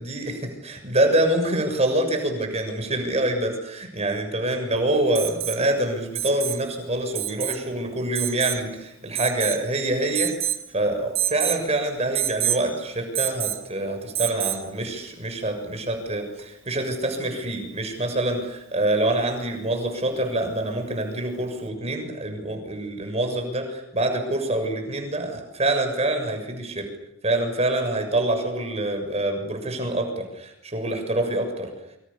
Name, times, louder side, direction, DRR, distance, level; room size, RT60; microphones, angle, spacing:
voice 1, 0.0-10.3 10.7-26.9 27.2-31.7, right 1 dB, 30° right, 5 dB, 6.8 m, -26 dB
Alarm, 5.1-5.6 6.1-6.6 7.1-7.6 8.1-8.6 9.1-9.7 10.1-10.6 11.1-11.6 12.1-12.6 13.1-13.6 14.1-14.6 16.4-16.5, right 11 dB, 75° right, 2.3 m, -27 dB
28.5 x 26.0 x 7.1 m, 0.84 s
head